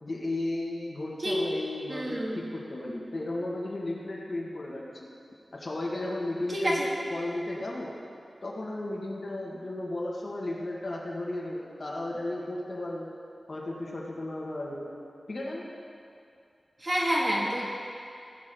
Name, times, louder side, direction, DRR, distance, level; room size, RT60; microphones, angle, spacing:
voice 1, 0.0-5.1 5.5-6.8 7.1-7.9 8.4-13.1 13.5-14.9 15.3-15.7, left 1 dB, 50° left, -3 dB, 2.1 m, -34 dB
voice 2, 1.9-2.4 6.5-6.9 16.8-17.6, equal, 35° right, -4 dB, 2.4 m, -28 dB
18.0 x 9.1 x 3.9 m, 2.4 s
wide cardioid pair, 95°, 0 cm